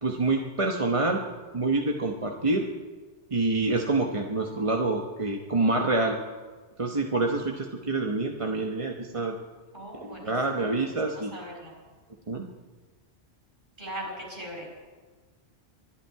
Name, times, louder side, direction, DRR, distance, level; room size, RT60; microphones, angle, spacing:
voice 1, 0.0-1.2 1.5-2.6 3.3-6.2 6.8-9.4 10.0-11.4 12.3-12.4, right 2 dB, 30° right, 2 dB, 1.1 m, -27 dB
voice 2, 9.7-11.7 13.8-14.7, right 1 dB, 45° right, -1 dB, 6.2 m, -40 dB
24.0 x 12.5 x 4.7 m, 1.4 s
omnidirectional pair, 1.1 m